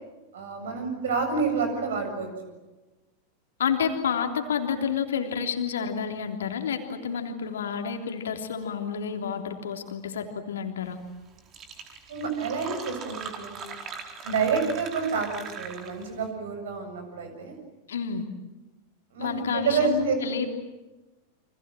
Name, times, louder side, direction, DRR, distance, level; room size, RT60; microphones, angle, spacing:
voice 1, 0.3-2.5 12.1-13.7 14.2-17.6 19.1-20.2, right 5 dB, 60° right, 6 dB, 7.4 m, -28 dB
voice 2, 3.6-11.0 17.9-18.2 19.2-20.5, left 7 dB, 65° left, 4 dB, 3.3 m, -29 dB
Fill (with liquid), 11.1-11.2 11.4-16.2, right 6 dB, 30° right, 4.4 m, -40 dB
29.5 x 26.0 x 7.6 m, 1.1 s
figure-of-eight pair, 90°, 0 cm